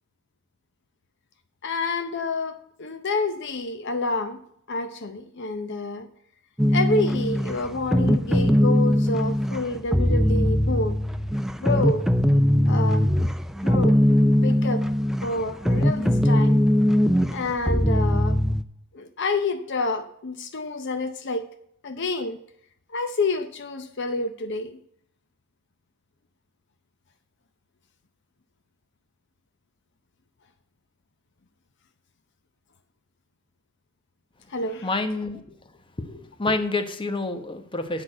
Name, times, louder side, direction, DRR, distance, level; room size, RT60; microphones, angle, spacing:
voice 1, 1.6-4.4 4.7-6.1 6.7-11.0 11.6-12.0 12.7-13.1 13.6-14.0 14.4-14.9 15.2-16.6 17.3-18.4 18.9-21.4 21.8-22.4 22.9-24.8 34.5-34.9, left 3 dB, 60° left, 9 dB, 0.7 m, -28 dB
sound 1, 6.6-18.6, equal, ahead, 0.4 m, -21 dB
voice 2, 34.8-35.4 36.0-38.0, left 2 dB, 25° left, 8 dB, 1.0 m, -28 dB
8.6 x 5.9 x 7.8 m, 0.70 s
head